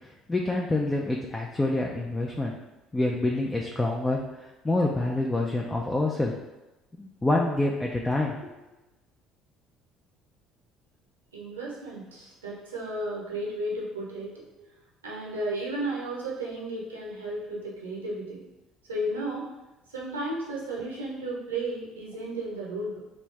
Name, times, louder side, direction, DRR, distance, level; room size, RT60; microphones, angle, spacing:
voice 1, 0.3-2.5 2.9-4.2 4.6-6.3 6.9-8.5, left 2 dB, 15° left, -1 dB, 0.4 m, -26 dB
voice 2, 11.3-14.7 15.0-18.4 18.9-19.5 19.9-23.0, right 1 dB, 85° right, -4 dB, 0.7 m, -33 dB
3.2 x 2.6 x 3.2 m, 1.0 s
hypercardioid pair, 55°, 0 cm